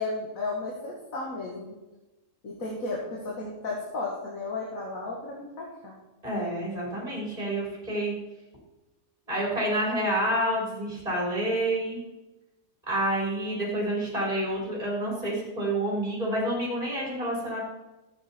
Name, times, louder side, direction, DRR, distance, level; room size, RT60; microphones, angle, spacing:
voice 1, 0.0-1.7 2.4-6.0, left 3 dB, 75° left, -2 dB, 2.1 m, -34 dB
voice 2, 6.2-8.1 9.3-12.0 12.9-17.6, right 1 dB, 30° right, -4 dB, 4.1 m, -28 dB
13.0 x 8.8 x 4.3 m, 1.1 s
omnidirectional pair, 1.5 m